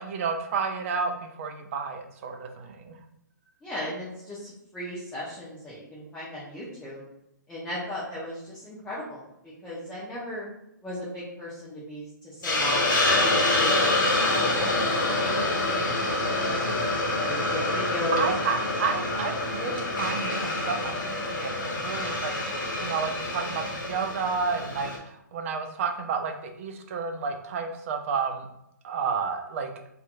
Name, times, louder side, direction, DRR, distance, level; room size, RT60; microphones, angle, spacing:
voice 1, 0.0-3.0 18.1-22.3 22.8-28.5 28.8-29.7, right 5 dB, 45° right, 5 dB, 0.4 m, -31 dB
voice 2, 3.6-7.0 7.5-10.5 10.8-14.8 15.2-16.2 17.3-18.3, equal, 10° left, -9 dB, 0.7 m, -36 dB
Hiss, 12.4-25.0, left 2 dB, 75° left, 0.8 m, -26 dB
2.7 x 2.4 x 2.5 m, 0.80 s
hypercardioid pair, 135°, 10 cm